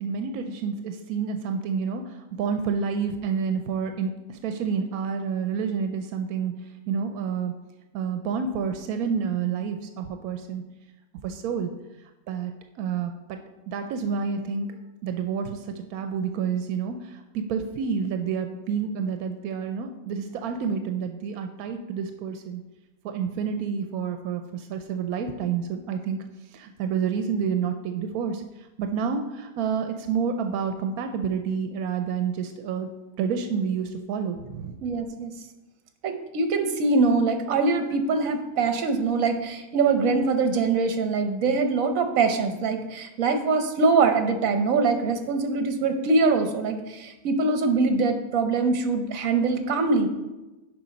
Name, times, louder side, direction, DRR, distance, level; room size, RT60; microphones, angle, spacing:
voice 1, 0.0-7.5 7.9-10.6 11.2-11.7 12.3-12.5 12.8-13.4 13.7-14.7 15.0-22.6 23.0-26.2 26.5-32.9 33.2-34.7, right 6 dB, 90° right, 7 dB, 1.1 m, -29 dB
voice 2, 34.8-35.3 36.0-50.1, right 4 dB, 70° right, 7 dB, 1.2 m, -23 dB
6.9 x 5.0 x 5.2 m, 1.0 s
omnidirectional pair, 1.5 m